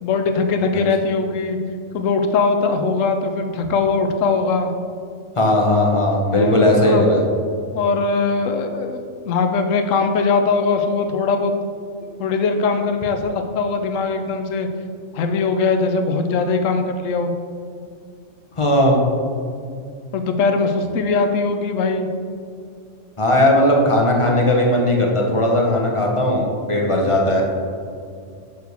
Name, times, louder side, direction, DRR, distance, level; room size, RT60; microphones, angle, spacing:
voice 1, 0.0-1.6 1.9-4.7 6.3-7.1 7.7-11.5 12.0-14.7 15.1-17.3 20.1-22.1, left 4 dB, 80° left, 6 dB, 1.0 m, -21 dB
voice 2, 5.4-7.2 18.6-19.0 23.2-27.4, left 1 dB, 30° left, -1 dB, 0.8 m, -17 dB
6.7 x 6.4 x 3.4 m, 2.3 s
omnidirectional pair, 1.3 m